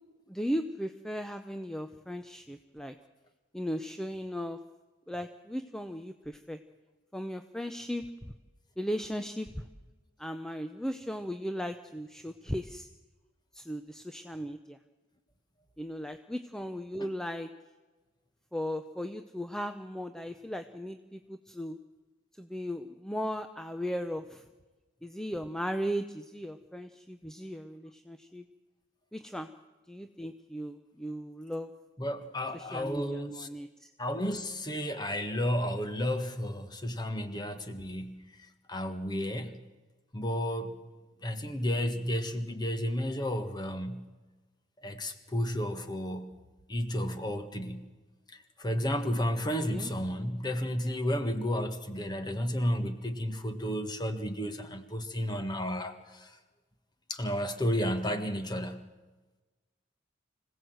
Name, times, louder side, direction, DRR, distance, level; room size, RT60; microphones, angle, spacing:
voice 1, 0.3-2.9 3.5-4.6 5.1-6.6 7.1-8.3 8.8-9.6 10.2-12.9 13.5-14.8 15.8-17.5 18.5-21.8 22.4-24.4 25.0-28.4 29.1-29.5 29.9-31.7 32.5-33.9 49.7-49.9, equal, 5° left, 7 dB, 0.6 m, -37 dB
voice 2, 32.0-33.5 34.0-38.3 38.7-39.5 40.1-40.8 41.2-44.1 44.8-46.4 46.7-47.9 48.3-56.4 57.1-58.9, equal, 20° left, 8 dB, 1.5 m, -32 dB
25.5 x 17.0 x 7.9 m, 1.2 s
head